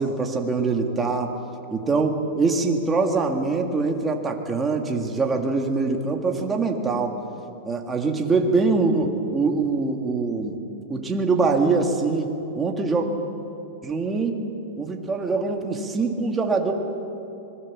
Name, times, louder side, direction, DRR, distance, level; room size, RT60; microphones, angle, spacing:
voice 1, 0.0-1.3 1.7-7.2 7.7-10.6 10.9-13.1 13.8-14.4 14.8-16.7, right 4 dB, 10° right, 2 dB, 1.8 m, -23 dB
26.5 x 21.0 x 7.3 m, 2.8 s
supercardioid pair, 165°, 0 cm